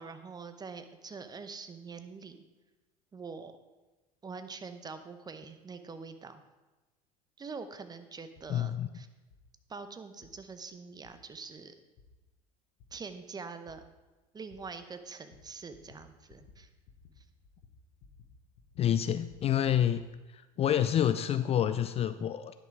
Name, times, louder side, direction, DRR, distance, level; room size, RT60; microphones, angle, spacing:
voice 1, 0.0-2.4 3.1-3.5 4.2-6.4 7.4-9.1 9.7-11.7 12.9-13.8 14.3-16.7 17.2-17.3, right 4 dB, 20° right, 10 dB, 0.9 m, -44 dB
sound 1, 8.4-8.5 9.3-9.4 10.2-10.3 11.0-11.1 12.0-12.1 12.8-12.9 13.7-13.8 14.5-14.6 15.3-15.4 15.7-16.0 16.3-16.6 16.8-17.2 17.4-18.3 18.6-20.0, left 6 dB, 60° left, 1.4 m, -58 dB
voice 2, 8.5-8.9 18.8-20.0 20.3-22.6, left 10 dB, 35° left, 12 dB, 0.4 m, -28 dB
10.5 x 5.9 x 4.7 m, 1.2 s
hypercardioid pair, 75°, 18 cm